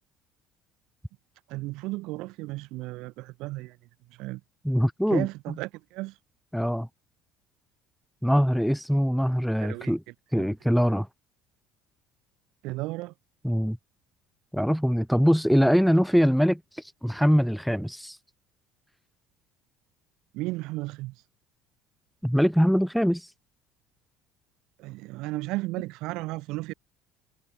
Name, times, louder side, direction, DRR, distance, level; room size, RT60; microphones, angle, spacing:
voice 1, 1.5-3.8 4.1-4.4 5.1-6.2 9.6-9.9 10.3-10.5 12.6-13.1 20.3-21.2 24.8-26.7, right 21 dB, 75° right, 3.2 m, -34 dB
voice 2, 4.6-5.3 6.5-6.9 8.2-10.0 10.3-11.1 13.4-13.8 14.5-16.6 17.0-18.2 22.2-23.3, equal, ahead, 0.7 m, -22 dB
supercardioid pair, 85°, 0 cm